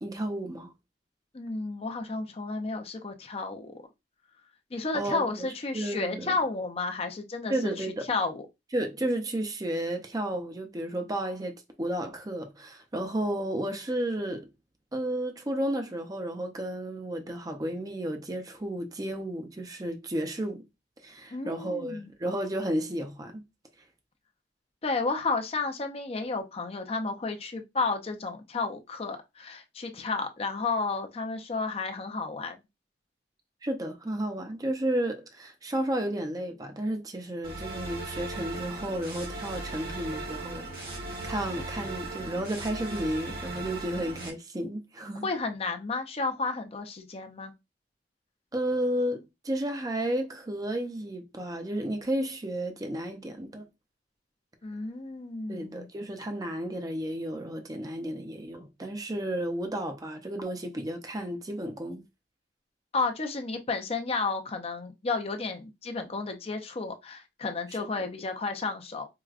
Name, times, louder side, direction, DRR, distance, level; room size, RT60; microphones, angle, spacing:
voice 1, 0.0-0.7 4.9-5.5 5.7-6.3 7.5-8.0 8.7-11.5 11.8-14.5 14.9-20.6 21.0-23.4 33.6-40.9 41.2-45.3 48.5-53.6 55.5-62.0, right 1 dB, 20° right, 0.5 m, -32 dB
voice 2, 1.3-3.8 4.7-8.5 21.3-22.1 24.8-32.6 45.2-47.5 54.6-55.9 62.9-69.1, left 3 dB, 35° left, 0.5 m, -32 dB
sound 1, 37.4-44.3, right 2 dB, 55° right, 1.1 m, -37 dB
4.7 x 2.2 x 2.4 m
head